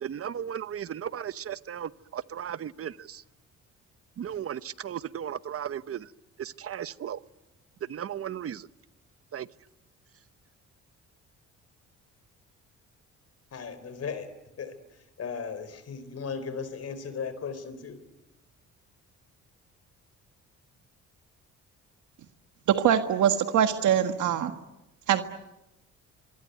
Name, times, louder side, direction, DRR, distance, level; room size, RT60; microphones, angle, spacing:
voice 1, 0.0-3.2 4.2-6.1 6.4-7.2 7.9-8.6 9.3-9.5, right 9 dB, 50° right, 16 dB, 0.9 m, -35 dB
voice 2, 13.5-14.3 14.6-14.7 15.2-18.0, left 6 dB, 55° left, 13 dB, 4.1 m, -36 dB
voice 3, 22.7-24.5 25.1-25.2, right 9 dB, 75° right, 8 dB, 1.7 m, -23 dB
25.5 x 24.5 x 9.5 m, 0.98 s
cardioid pair, 90°, 30 cm